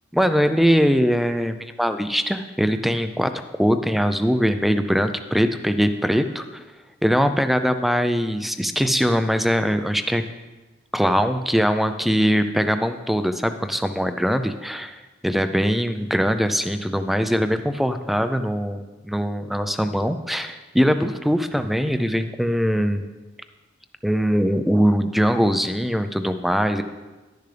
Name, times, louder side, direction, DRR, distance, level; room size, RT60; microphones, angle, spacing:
voice 1, 0.1-6.6 7.0-10.2 10.9-23.0 24.0-26.8, equal, ahead, 9 dB, 0.4 m, -22 dB
11.5 x 10.5 x 3.3 m, 1.2 s
head